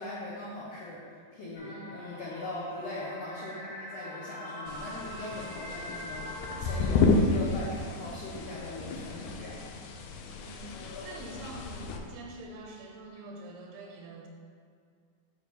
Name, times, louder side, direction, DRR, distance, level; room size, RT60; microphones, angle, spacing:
voice 1, 0.0-9.6, left 2 dB, 75° left, -6 dB, 1.5 m, -40 dB
sound 1, 1.5-7.0, left 1 dB, 50° left, 1.9 m, -43 dB
voice 2, 1.7-2.0 10.4-14.3, right 2 dB, 80° right, 0 dB, 2.6 m, -45 dB
sound 2, 4.7-12.0, left 3 dB, 90° left, 1.6 m, -31 dB
6.0 x 5.1 x 6.8 m, 2.2 s
omnidirectional pair, 4.2 m